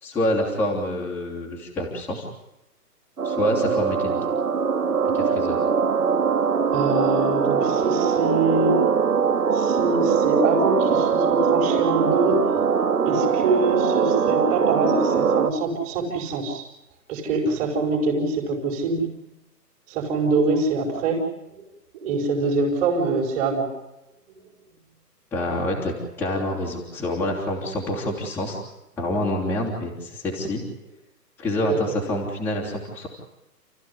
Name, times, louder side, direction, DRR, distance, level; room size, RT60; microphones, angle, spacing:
voice 1, 0.0-2.2 3.2-4.2 5.1-5.6 25.3-28.6 29.0-30.6 31.4-33.1, left 1 dB, 5° left, -4 dB, 3.4 m, -27 dB
sound 1, 3.2-15.5, right 6 dB, 65° right, 2.3 m, -22 dB
voice 2, 6.7-8.8 9.3-12.4 13.0-16.6 17.1-19.1 19.9-21.3 21.5-21.6 22.0-23.7 24.3-24.4 31.7-32.0, right 3 dB, 15° right, -3 dB, 5.1 m, -24 dB
29.5 x 15.0 x 9.9 m, 0.93 s
hypercardioid pair, 160°, 49 cm